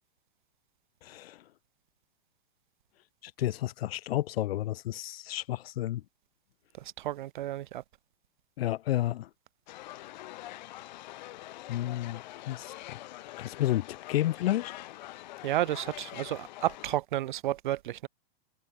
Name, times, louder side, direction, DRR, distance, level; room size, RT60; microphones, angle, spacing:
voice 1, 3.4-6.0 8.6-9.3 11.7-12.2 12.5-13.0 13.4-14.7, left 14 dB, 75° left, 0.6 m, -31 dB
voice 2, 7.0-7.8 15.4-18.1, right 14 dB, 50° right, 1.0 m, -31 dB
sound 1, 9.7-17.0, left 16 dB, 45° left, 2.7 m, -45 dB
supercardioid pair, 170°, 30 cm